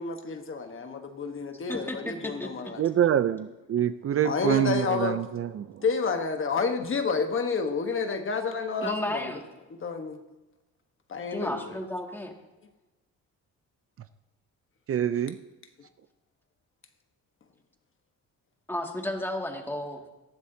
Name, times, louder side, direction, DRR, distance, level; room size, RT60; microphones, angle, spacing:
voice 1, 0.0-2.8 4.2-5.3 5.8-9.3 9.8-10.2 11.1-11.6, left 5 dB, 45° left, 6 dB, 1.3 m, -29 dB
voice 2, 1.7-2.5 8.8-9.4 11.3-12.3 18.7-20.0, left 1 dB, 5° left, 1 dB, 2.2 m, -33 dB
voice 3, 2.8-5.7 14.9-15.4, right 10 dB, 50° right, 12 dB, 0.6 m, -25 dB
19.0 x 12.5 x 2.8 m, 1.1 s
cardioid pair, 90°, 30 cm